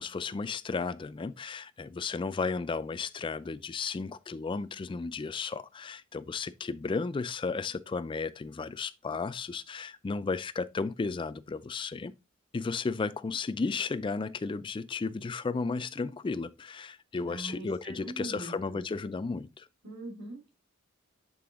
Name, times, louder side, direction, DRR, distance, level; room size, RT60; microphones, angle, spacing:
voice 1, 0.0-12.1 12.5-19.7, left 4 dB, 25° left, 0.3 m, -34 dB
voice 2, 17.2-18.8 19.8-20.5, right 2 dB, 60° right, 2.5 m, -42 dB
7.7 x 3.8 x 3.6 m
head